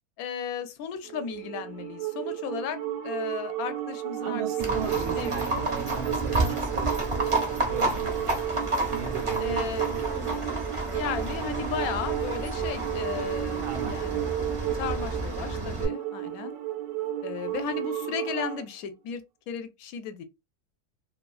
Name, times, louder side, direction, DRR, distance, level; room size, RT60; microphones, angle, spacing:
voice 1, 0.2-4.9 5.2-5.7 9.4-9.9 10.9-14.3 14.8-16.5 17.2-20.2, left 8 dB, 70° left, 1.0 m, -35 dB
sound 1, 1.0-18.6, right 12 dB, 70° right, 0.8 m, -33 dB
voice 2, 4.2-8.6 8.9-10.0 11.2-11.7 13.6-14.5, right 7 dB, 85° right, 1.3 m, -38 dB
Livestock farm animals working animals, 4.6-15.9, right 2 dB, 35° right, 0.5 m, -30 dB
2.9 x 2.3 x 2.3 m
omnidirectional pair, 1.7 m